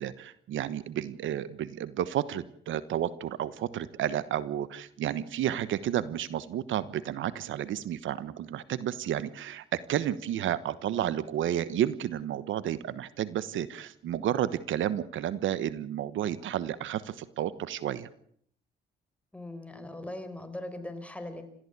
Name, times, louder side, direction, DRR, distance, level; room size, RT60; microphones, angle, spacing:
voice 1, 0.0-18.1, right 11 dB, 75° right, 15 dB, 1.2 m, -31 dB
voice 2, 19.3-21.4, left 1 dB, 5° left, 8 dB, 4.7 m, -40 dB
29.0 x 14.5 x 8.3 m, 0.66 s
cardioid pair, 90°, 20 cm